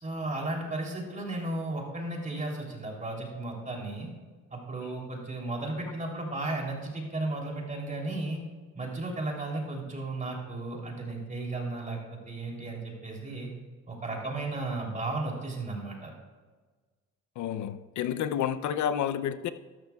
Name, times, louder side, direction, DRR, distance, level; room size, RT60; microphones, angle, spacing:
voice 1, 0.0-4.1 4.5-8.4 8.7-13.5 13.9-16.1, right 2 dB, 25° right, 0 dB, 3.2 m, -34 dB
voice 2, 17.4-19.5, left 9 dB, 70° left, 13 dB, 0.6 m, -30 dB
13.0 x 12.5 x 2.3 m, 1.4 s
cardioid pair, 90°, 30 cm